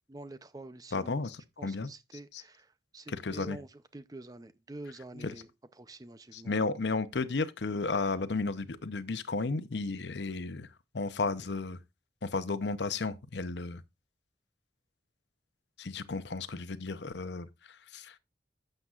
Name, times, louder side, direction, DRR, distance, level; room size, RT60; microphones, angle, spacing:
voice 1, 0.1-1.1 1.6-5.5 5.8-6.7, right 2 dB, 20° right, 0.6 m, -47 dB
voice 2, 0.9-2.4 3.1-3.6 5.1-5.4 6.3-10.7 10.9-11.8 12.2-13.8 15.8-18.2, left 3 dB, 80° left, 0.7 m, -34 dB
11.5 x 7.7 x 2.4 m
head